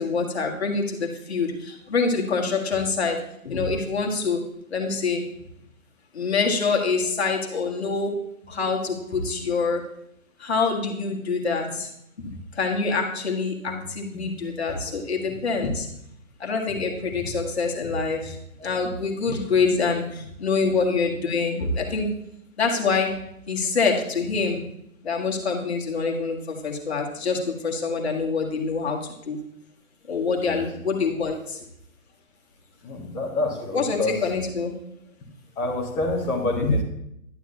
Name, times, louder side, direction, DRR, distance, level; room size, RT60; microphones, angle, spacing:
voice 1, 0.0-3.2 3.4-4.4 4.7-5.2 6.1-8.1 8.5-9.8 10.4-11.9 12.2-15.9 16.4-18.4 18.6-22.1 22.6-23.1 23.5-24.6 25.0-29.0 29.3-29.4 30.1-31.6 33.7-34.8 36.6-36.7, left 4 dB, 45° left, 1 dB, 1.8 m, -25 dB
voice 2, 14.1-14.5 18.6-18.8 21.5-21.7 30.3-30.7 32.8-34.1 35.5-36.8, left 2 dB, 10° left, -5 dB, 1.2 m, -29 dB
11.0 x 9.4 x 2.8 m, 0.74 s
figure-of-eight pair, 140°, 43 cm